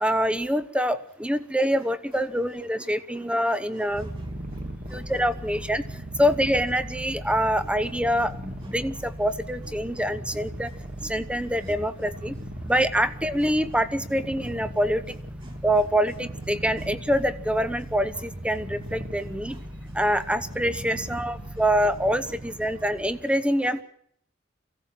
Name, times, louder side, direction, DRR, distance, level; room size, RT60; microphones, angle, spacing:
voice 1, 0.0-4.1 4.9-5.8 6.2-10.7 11.0-12.4 12.7-15.0 15.6-19.6 19.9-23.8, equal, 5° right, 13 dB, 1.0 m, -25 dB
voice 2, 2.8-5.2 5.6-6.0 7.6-7.7 8.6-8.8 10.3-10.5 11.0-11.1 11.7-11.8 15.4-15.5 19.5-19.6 20.9-21.0 22.3-22.4 23.6-23.8, right 1 dB, 30° right, 4 dB, 4.7 m, -49 dB
Purr, 3.9-23.2, right 1 dB, 45° right, 2.4 m, -38 dB
24.5 x 16.0 x 7.7 m, 0.68 s
head